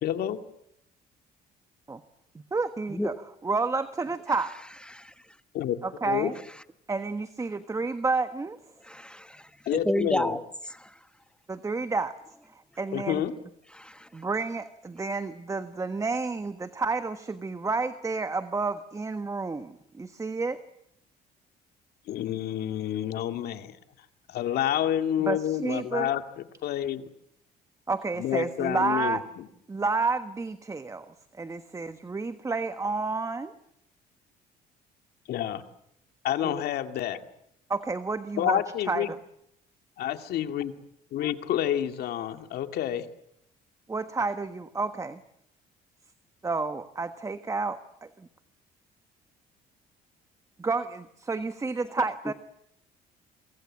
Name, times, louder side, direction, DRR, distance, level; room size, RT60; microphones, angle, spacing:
voice 1, 0.0-0.4 5.5-5.8 6.1-6.3 9.7-10.4 12.9-13.3 22.1-23.7 24.3-27.1 28.2-29.2 35.3-35.6 36.2-37.2 38.4-39.1 40.0-40.7 41.1-43.1, left 11 dB, 70° left, 8 dB, 2.2 m, -29 dB
voice 2, 2.3-3.1 3.4-4.6 5.8-6.3 6.9-8.6 11.5-12.1 12.8-13.2 14.1-20.6 25.2-26.1 27.9-29.2 29.7-33.5 36.4-36.6 37.7-38.6 38.9-39.2 43.9-45.2 46.4-48.3 50.6-52.3, right 3 dB, 20° right, 11 dB, 1.4 m, -30 dB
voice 3, 8.8-9.5 9.8-10.4 10.7-10.9 13.7-14.1, left 1 dB, 5° left, 11 dB, 1.2 m, -30 dB
28.0 x 24.5 x 7.5 m, 0.74 s
cardioid pair, 110°, 17 cm